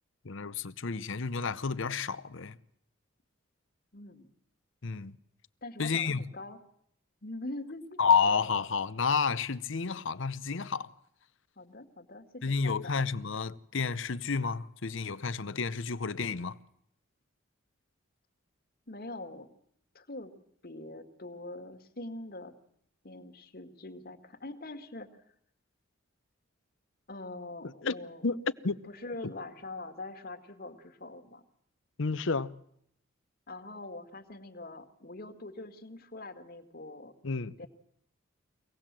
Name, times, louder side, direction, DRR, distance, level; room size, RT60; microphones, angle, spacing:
voice 1, 0.2-2.6 4.8-5.2 5.8-6.3 8.0-10.9 12.4-16.6 27.8-27.9 28.2-28.8 29.2-29.3 32.0-32.5 37.2-37.7, left 5 dB, 65° left, 0.8 m, -30 dB
voice 2, 3.9-4.3 5.6-6.6 7.2-8.0 11.6-13.0 18.9-19.5 19.9-20.3 20.6-22.6 23.0-25.1 27.1-28.2 28.8-31.4 33.5-37.2 37.6-37.7, left 2 dB, 45° left, 2.0 m, -43 dB
24.5 x 18.5 x 7.5 m
head